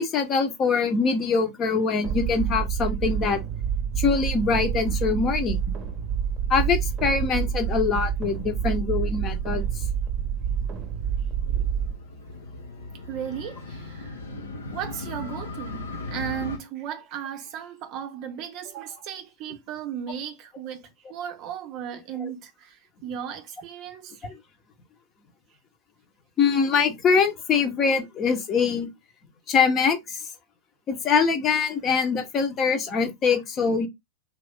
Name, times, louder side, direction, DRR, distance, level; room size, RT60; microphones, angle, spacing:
voice 1, 0.0-3.4 3.9-5.6 6.5-9.7 22.2-22.3 26.4-28.9 29.5-30.2 30.9-33.9, left 5 dB, 30° left, 0.9 m, -23 dB
sound 1, 2.0-11.9, right 8 dB, 25° right, 0.8 m, -27 dB
Motorcycle, 5.0-16.6, left 2 dB, 85° left, 0.9 m, -40 dB
voice 2, 13.1-14.2 14.7-24.3, right 9 dB, 45° right, 0.5 m, -36 dB
3.0 x 2.6 x 3.5 m
hypercardioid pair, 100°, 0 cm